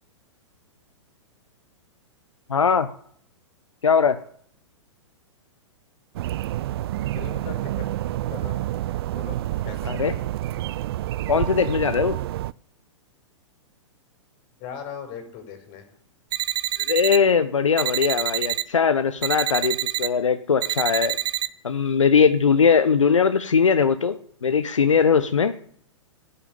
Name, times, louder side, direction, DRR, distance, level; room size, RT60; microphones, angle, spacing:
voice 1, 2.5-2.9 3.8-4.2 9.9-10.1 11.3-12.2 16.9-21.2 21.6-24.1 24.4-25.5, left 6 dB, 85° left, 10 dB, 0.9 m, -20 dB
sound 1, 6.1-12.5, right 14 dB, 55° right, 0.5 m, -28 dB
voice 2, 7.1-8.6 9.1-9.4 9.6-10.1 14.6-15.8, left 8 dB, 40° left, 6 dB, 4.8 m, -39 dB
sound 2, 16.3-17.2 17.8-18.6 19.2-20.1 20.6-21.5, right 13 dB, 25° right, 0.8 m, -26 dB
16.5 x 7.1 x 8.9 m, 0.63 s
figure-of-eight pair, 110°, 16 cm